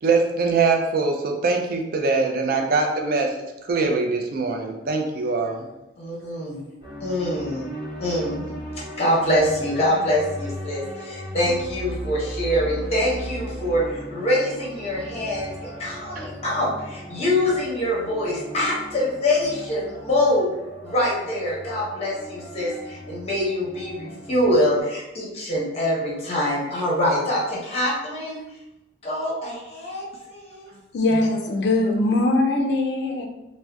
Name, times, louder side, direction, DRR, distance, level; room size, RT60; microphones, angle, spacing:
voice 1, 0.0-3.4 3.7-5.7 16.2-16.3, right 4 dB, 50° right, 3 dB, 0.3 m, -22 dB
voice 2, 6.0-6.6 7.0-7.7 8.0-8.5 9.0-28.4 29.0-30.7 31.1-31.2, left 1 dB, 35° left, -5 dB, 0.7 m, -24 dB
sound 1, 6.8-24.8, equal, 30° right, 0.9 m, -37 dB
voice 3, 30.9-33.3, left 2 dB, 65° left, 2 dB, 0.3 m, -21 dB
2.7 x 2.0 x 2.2 m, 0.95 s
head